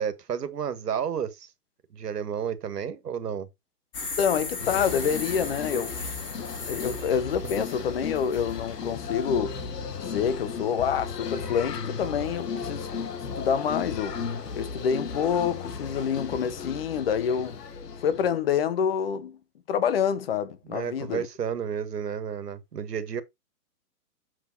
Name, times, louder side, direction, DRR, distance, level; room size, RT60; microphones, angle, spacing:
voice 1, 0.0-1.5 1.9-3.5 20.7-23.2, right 8 dB, 85° right, 1.9 m, -31 dB
sound 1, 3.9-8.9, left 4 dB, 10° left, 1.4 m, -37 dB
voice 2, 4.2-6.2 6.6-9.6 10.0-12.9 13.3-14.2 14.6-17.5 18.0-19.4 19.7-21.3, left 7 dB, 40° left, 1.1 m, -27 dB
sound 2, 4.6-18.3, left 5 dB, 85° left, 2.0 m, -35 dB
7.4 x 5.0 x 4.1 m
hypercardioid pair, 170°, 47 cm